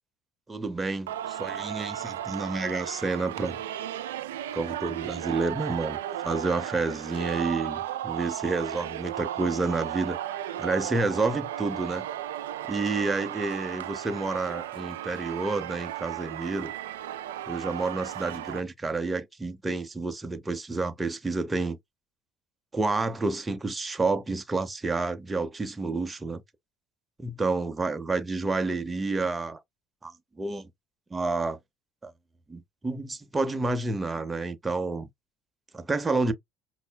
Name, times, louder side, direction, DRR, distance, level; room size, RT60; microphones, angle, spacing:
voice 1, 0.5-3.6 4.5-6.0 6.2-10.2 10.6-12.1 12.7-16.7 17.5-21.8 22.7-26.4 27.2-29.6 30.0-30.7 31.1-31.6 32.0-32.1 32.5-35.1 35.7-36.3, right 3 dB, 20° right, 0.7 m, -29 dB
Singing, 1.1-18.6, right 11 dB, 85° right, 0.3 m, -35 dB
5.4 x 2.1 x 2.2 m
hypercardioid pair, 70°, 0 cm